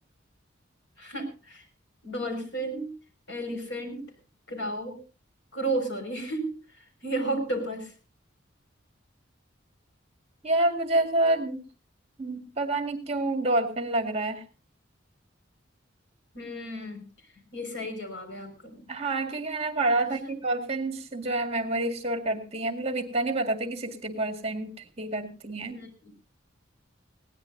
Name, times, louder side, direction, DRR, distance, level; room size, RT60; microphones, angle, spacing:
voice 1, 1.0-1.7 2.0-2.9 3.3-4.1 4.5-5.0 5.5-7.9 16.3-17.0 17.5-18.8 20.0-20.4 25.7-26.1, right 1 dB, 70° left, 5 dB, 5.7 m, -33 dB
voice 2, 10.4-11.6 12.2-14.4 18.9-25.8, right 2 dB, 30° right, 7 dB, 2.0 m, -28 dB
20.5 x 18.0 x 2.7 m, 0.33 s
head